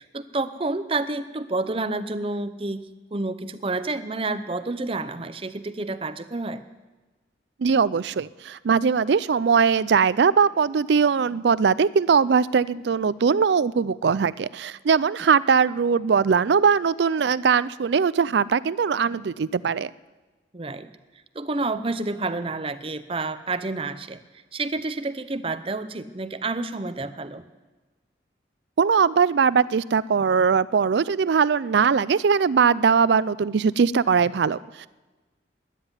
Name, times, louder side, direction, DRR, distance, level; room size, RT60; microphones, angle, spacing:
voice 1, 0.0-2.8 3.1-6.6 20.5-20.9 21.3-24.2 24.5-27.4, right 3 dB, 30° right, 11 dB, 0.7 m, -29 dB
voice 2, 7.6-19.9 28.8-34.9, right 6 dB, 70° right, 19 dB, 0.4 m, -21 dB
13.5 x 10.0 x 9.8 m, 1.2 s
head